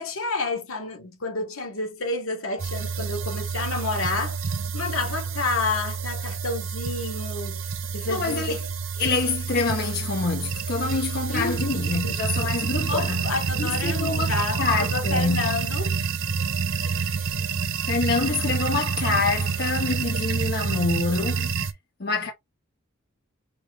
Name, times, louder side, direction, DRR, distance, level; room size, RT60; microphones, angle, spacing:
voice 1, 0.0-4.4 4.7-8.6 10.8-11.0 11.3-16.0, left 3 dB, 75° left, 1.4 m, -30 dB
sound 1, 2.6-21.7, right 5 dB, 65° right, 0.7 m, -28 dB
voice 2, 8.1-8.6 9.0-13.2 13.6-14.3 14.6-15.5 17.8-21.5 22.0-22.3, left 4 dB, 45° left, 0.7 m, -26 dB
5.9 x 2.4 x 3.2 m
head